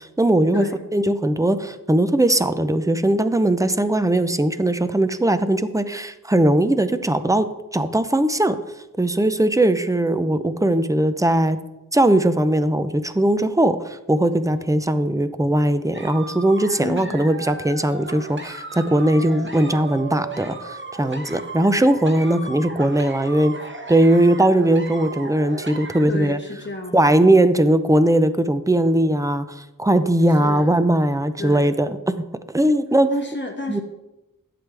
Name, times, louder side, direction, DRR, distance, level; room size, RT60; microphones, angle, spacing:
voice 1, 0.0-0.7 0.9-7.5 7.7-8.6 9.0-11.6 11.9-26.4 26.9-32.0 32.5-33.1 33.7-33.8, right 1 dB, 10° right, 11 dB, 0.6 m, -19 dB
voice 2, 0.5-0.8 16.8-17.4 26.1-27.3 30.3-31.0 31.4-31.8 33.1-33.8, left 2 dB, 30° left, 1 dB, 1.8 m, -31 dB
sound 1, 15.9-26.0, right 3 dB, 35° right, 1.1 m, -36 dB
11.5 x 7.8 x 3.4 m, 0.99 s
wide cardioid pair, 60°, 35 cm